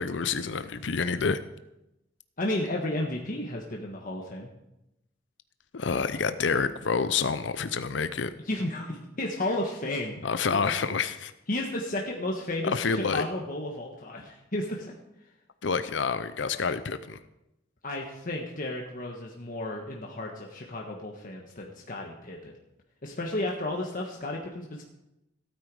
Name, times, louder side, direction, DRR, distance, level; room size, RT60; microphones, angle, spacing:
voice 1, 0.0-1.4 5.7-8.3 10.2-11.3 12.7-13.2 15.6-17.2, left 5 dB, 75° left, 12 dB, 0.6 m, -28 dB
voice 2, 2.4-4.5 8.4-10.2 10.5-10.6 11.5-14.9 17.8-22.5 23.0-24.8, left 1 dB, 50° left, 0 dB, 1.4 m, -33 dB
16.0 x 9.1 x 4.9 m, 0.91 s
head